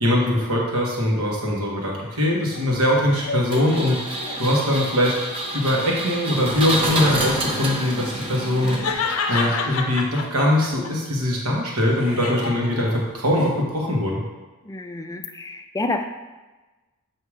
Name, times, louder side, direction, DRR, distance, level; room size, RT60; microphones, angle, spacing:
voice 1, 0.0-4.0 4.4-5.2 5.5-8.8 9.3-14.2, left 1 dB, 80° right, -2 dB, 1.2 m, -22 dB
sound 1, 1.8-4.9 5.4-6.1 7.8-10.9 11.3-13.5, left 4 dB, 65° left, 0.5 m, -31 dB
Engine, 3.5-9.2, right 1 dB, 25° right, 0.7 m, -28 dB
voice 2, 14.7-16.0, left 2 dB, 15° left, 5 dB, 0.3 m, -29 dB
7.2 x 2.8 x 4.8 m, 1.2 s
head